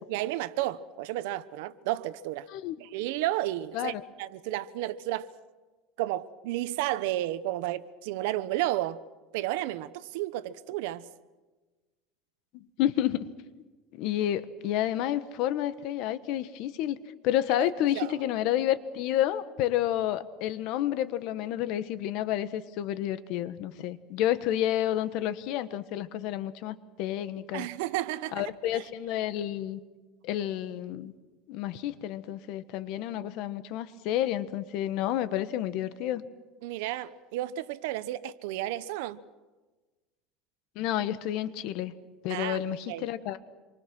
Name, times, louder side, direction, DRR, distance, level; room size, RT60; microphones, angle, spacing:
voice 1, 0.1-2.5 2.8-5.3 6.0-9.0 9.3-11.1 17.6-17.7 17.9-18.1 27.5-28.8 36.6-39.2 42.3-42.6 42.9-43.0, right 15 dB, 80° right, 1.1 m, -32 dB
voice 2, 12.5-13.3 13.9-17.0 17.2-27.7 28.3-29.8 30.2-31.1 31.5-36.2 40.7-41.9 42.2-43.4, left 12 dB, 60° left, 1.4 m, -30 dB
27.5 x 24.0 x 6.2 m
cardioid pair, 150°, 0 cm